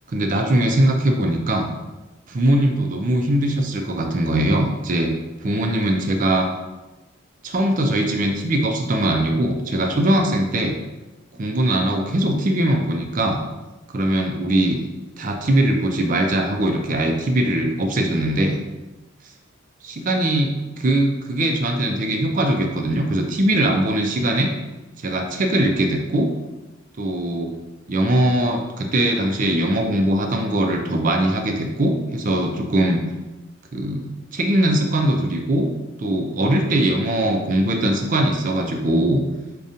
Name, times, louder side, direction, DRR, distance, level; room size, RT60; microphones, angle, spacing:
voice 1, 0.1-1.7 2.3-5.1 5.4-6.5 7.4-10.8 11.4-13.4 13.9-14.8 15.2-18.6 19.8-24.5 25.0-26.3 27.0-27.5 27.9-33.0 33.7-35.7 36.0-39.2, right 1 dB, 40° right, 3 dB, 0.5 m, -21 dB
5.0 x 2.3 x 2.7 m, 1.1 s
head